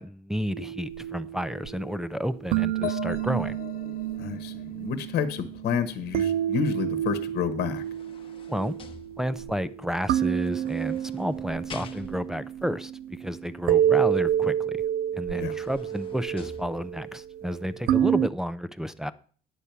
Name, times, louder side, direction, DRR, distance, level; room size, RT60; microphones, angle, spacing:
voice 1, 0.0-3.6 8.5-8.8 9.2-14.8 15.1-19.1, equal, 5° right, 0.5 m, -31 dB
sound 1, 0.5-18.3, right 10 dB, 65° right, 0.4 m, -29 dB
sound 2, 2.8-6.5, left 15 dB, 55° left, 0.7 m, -41 dB
voice 2, 4.2-7.8 15.3-15.5, left 7 dB, 75° left, 1.1 m, -30 dB
sound 3, 7.4-9.7 10.5-12.5 14.7-14.8 15.2-17.2 17.8-17.9, left 5 dB, 30° left, 0.9 m, -47 dB
9.9 x 4.5 x 6.9 m
cardioid pair, 110°, 17 cm